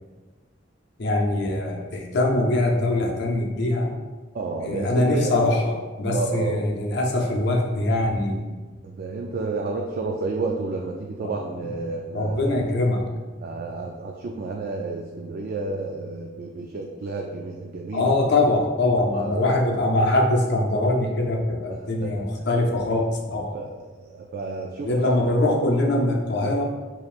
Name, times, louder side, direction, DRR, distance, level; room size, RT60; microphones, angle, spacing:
voice 1, 1.0-3.9 4.6-8.5 12.1-13.0 17.9-23.6 24.8-26.6, left 2 dB, 60° left, 1 dB, 0.6 m, -22 dB
voice 2, 4.3-5.3 6.0-6.6 8.8-12.5 13.4-18.1 19.1-19.6 21.7-22.2 23.5-25.1, right 3 dB, 50° right, 0 dB, 0.3 m, -31 dB
4.8 x 3.0 x 2.4 m, 1.3 s
head